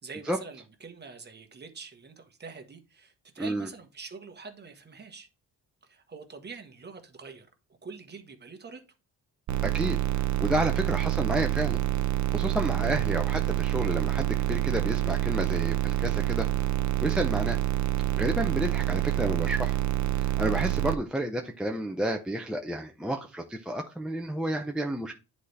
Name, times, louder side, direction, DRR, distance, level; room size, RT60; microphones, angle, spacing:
voice 1, 0.0-5.3 5.8-7.5 7.8-8.8, right 4 dB, 25° right, 1.2 m, -45 dB
voice 2, 3.4-3.7 9.6-11.8 12.3-16.5 17.0-17.6 18.2-19.8 20.2-25.1, right 1 dB, ahead, 0.5 m, -31 dB
sound 1, 9.5-20.9, right 15 dB, 50° right, 0.6 m, -27 dB
9.9 x 4.2 x 3.3 m
cardioid pair, 150°, 39 cm